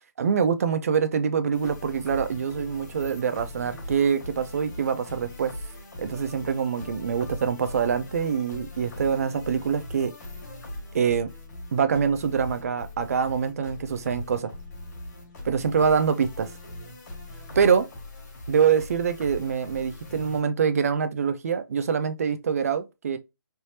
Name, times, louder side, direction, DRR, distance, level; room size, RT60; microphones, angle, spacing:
voice 1, 0.2-5.5 6.0-10.1 10.9-11.3 11.7-14.5 15.4-16.5 17.6-17.9 18.5-23.2, right 6 dB, 45° right, 0.4 m, -25 dB
sound 1, 1.5-20.4, left 1 dB, 50° left, 1.7 m, -41 dB
3.3 x 3.0 x 2.7 m
hypercardioid pair, 170°, 11 cm